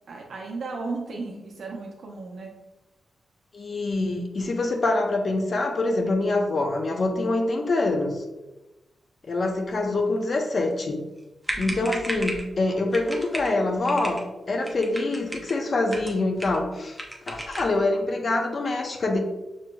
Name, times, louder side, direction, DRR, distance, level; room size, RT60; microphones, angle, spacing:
voice 1, 0.1-2.6 11.5-11.9, right 3 dB, 70° right, -1 dB, 0.6 m, -35 dB
voice 2, 3.5-8.2 9.2-11.0 11.6-17.0 17.3-19.2, left 2 dB, 45° left, 4 dB, 0.6 m, -25 dB
sound 1, 11.2-11.3 11.4-12.5 12.9-13.5 13.8-14.2 14.6-15.5 15.9-16.6 16.9-17.7, right 1 dB, ahead, 0.6 m, -34 dB
6.2 x 2.9 x 2.2 m, 1.0 s
wide cardioid pair, 130°, 0 cm